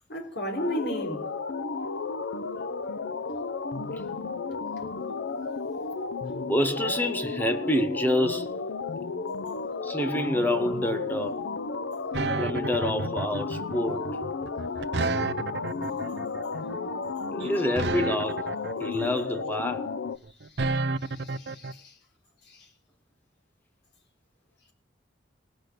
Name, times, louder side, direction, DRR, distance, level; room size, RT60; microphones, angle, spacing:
voice 1, 0.1-1.3 20.7-21.9 22.5-22.7, equal, 65° left, 3.7 m, -34 dB
sound 1, 0.6-20.2, left 4 dB, 85° left, 0.6 m, -33 dB
voice 2, 6.4-8.5 9.8-11.4 12.4-14.2 17.3-18.5 18.8-19.9, left 1 dB, 10° left, 1.1 m, -27 dB
sound 2, 12.1-21.7, right 3 dB, 65° right, 0.6 m, -31 dB
18.5 x 6.1 x 6.7 m
head